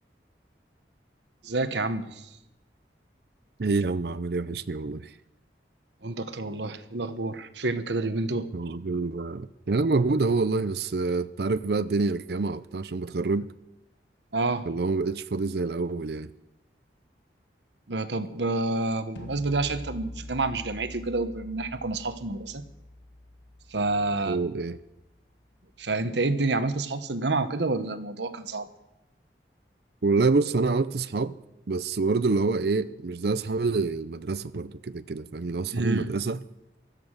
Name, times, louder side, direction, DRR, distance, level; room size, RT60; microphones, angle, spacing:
voice 1, 1.4-2.3 6.0-8.5 14.3-14.7 17.9-22.6 23.7-24.4 25.8-28.7 35.7-36.1, right 2 dB, 80° right, 1.2 m, -28 dB
voice 2, 3.6-5.1 8.5-13.5 14.7-16.3 24.3-24.8 30.0-31.3 31.7-36.4, right 3 dB, 60° right, 0.5 m, -27 dB
sound 1, 19.2-25.1, left 1 dB, 80° left, 1.6 m, -44 dB
16.0 x 13.0 x 6.5 m
head